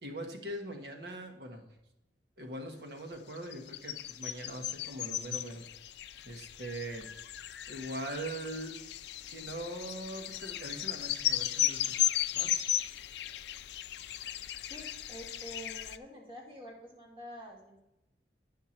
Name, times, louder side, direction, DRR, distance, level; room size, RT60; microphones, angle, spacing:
voice 1, 0.0-1.6 2.4-5.6 6.2-7.1 7.7-8.8 9.3-11.9 12.3-12.5, right 1 dB, 70° right, 3 dB, 1.3 m, -41 dB
sound 1, 3.4-16.0, left 12 dB, 75° left, 0.4 m, -35 dB
voice 2, 14.7-17.8, equal, 30° right, -3 dB, 2.1 m, -47 dB
9.8 x 5.8 x 4.4 m, 0.91 s
head